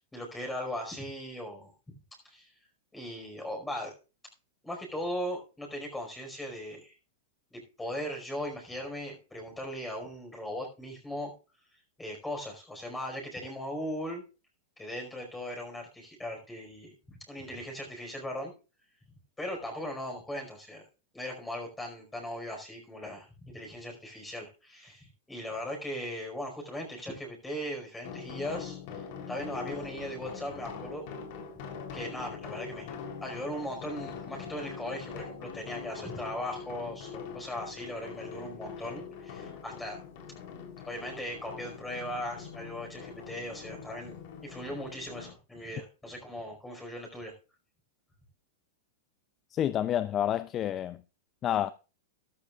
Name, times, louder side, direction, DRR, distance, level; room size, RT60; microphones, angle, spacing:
voice 1, 0.0-1.9 2.2-2.5 2.9-3.9 4.6-6.9 7.5-11.3 12.0-14.2 14.8-18.5 19.4-20.9 21.1-31.0 31.9-40.0 40.9-44.2 44.4-47.3, equal, 10° left, 5.0 m, -38 dB
sound 1, 28.0-45.3, left 6 dB, 55° left, 3.4 m, -43 dB
voice 2, 49.5-51.0 51.4-51.7, left 11 dB, 30° left, 0.5 m, -29 dB
13.5 x 12.0 x 2.4 m
hypercardioid pair, 125°, 0 cm